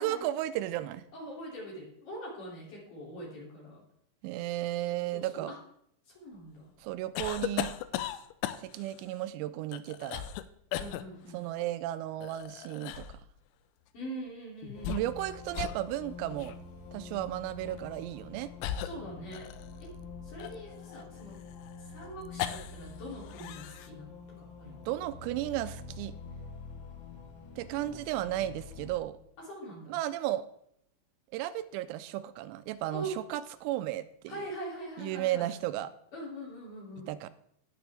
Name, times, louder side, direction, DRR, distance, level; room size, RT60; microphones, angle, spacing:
voice 1, 0.0-1.0 4.2-5.5 6.8-7.7 8.6-10.3 11.3-13.1 14.9-16.5 16.9-18.5 24.9-26.1 27.6-29.2 29.9-30.5 31.3-34.3 35.0-35.9 37.1-37.3, right 14 dB, 90° right, 12 dB, 3.3 m, -34 dB
voice 2, 1.1-3.8 5.1-5.6 6.1-6.7 10.8-11.4 13.9-15.0 18.8-19.5 19.8-19.9 20.2-21.4 21.8-24.9 29.4-30.0 32.9-33.2 34.3-35.5 36.1-37.1, right 1 dB, 45° left, -4 dB, 3.8 m, -43 dB
sound 1, 7.2-8.9 9.7-10.4 10.7-11.0 12.2-13.2 14.6-15.3 15.5-15.8 16.4-16.6 17.7-17.9 18.6-19.8 20.4-22.9 23.2-23.9, left 11 dB, 85° left, 3.3 m, -37 dB
sound 2, 14.8-29.0, left 4 dB, 70° left, 2.9 m, -47 dB
17.5 x 6.0 x 3.4 m, 0.72 s
omnidirectional pair, 5.9 m